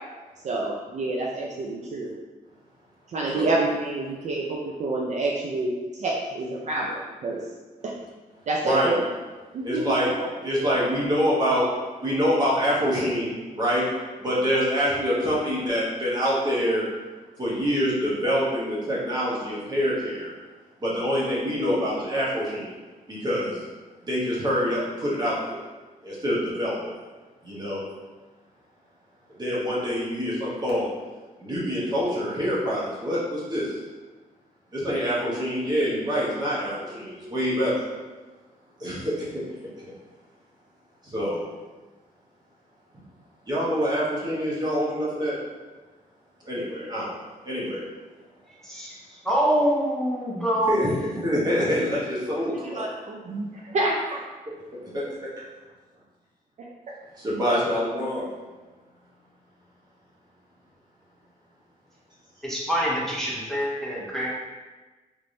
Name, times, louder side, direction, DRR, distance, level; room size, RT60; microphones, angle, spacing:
voice 1, 0.4-2.1 3.1-7.4 8.5-9.0 9.5-10.3 10.6-10.8 52.8-54.2, right 2 dB, 55° right, -2 dB, 0.4 m, -28 dB
voice 2, 9.6-10.1 10.4-11.7 12.0-13.8 14.2-16.8 17.4-20.3 20.8-22.8 23.1-23.6 24.0-25.6 26.0-26.8 27.4-27.8 29.4-30.9 31.4-33.8 34.7-37.8 38.8-39.3 41.0-41.4 43.5-45.4 46.4-47.1 47.4-47.8 50.7-52.8 54.9-55.0 57.2-58.3, equal, 30° right, -7 dB, 0.9 m, -25 dB
voice 3, 48.6-49.0 49.2-50.8 62.4-64.3, right 1 dB, 5° left, -6 dB, 0.5 m, -25 dB
3.2 x 3.0 x 2.6 m, 1.3 s
wide cardioid pair, 160°, 14 cm